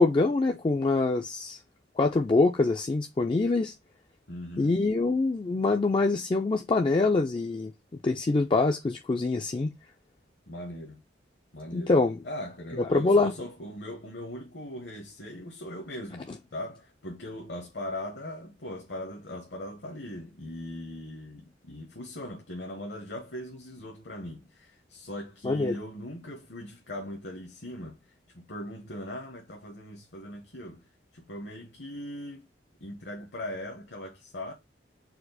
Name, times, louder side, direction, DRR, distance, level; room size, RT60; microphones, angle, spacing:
voice 1, 0.0-1.6 2.0-3.7 4.6-7.7 8.0-9.7 11.7-12.2 12.8-13.3 16.3-16.4 25.4-25.7, left 3 dB, 25° left, 0.3 m, -24 dB
voice 2, 4.3-4.8 10.5-11.0 11.5-11.9 12.2-28.0 28.3-30.9 31.1-32.4 32.8-34.5, left 1 dB, 65° left, 1.0 m, -40 dB
4.3 x 2.4 x 4.0 m
head